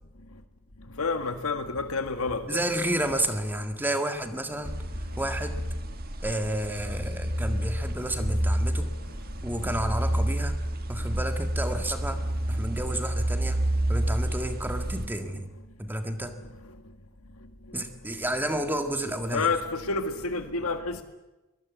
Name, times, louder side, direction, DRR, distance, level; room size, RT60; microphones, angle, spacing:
voice 1, 1.0-2.4 19.3-21.0, left 4 dB, 85° left, 7 dB, 1.9 m, -28 dB
voice 2, 2.5-4.8 5.2-5.6 6.2-8.9 9.4-10.6 10.9-12.2 12.5-13.6 13.9-15.5 15.8-16.3 17.7-19.5, right 1 dB, 10° right, 6 dB, 1.7 m, -31 dB
sound 1, 4.6-15.1, right 1 dB, 45° right, 1.7 m, -29 dB
23.0 x 21.0 x 8.2 m, 1.0 s
head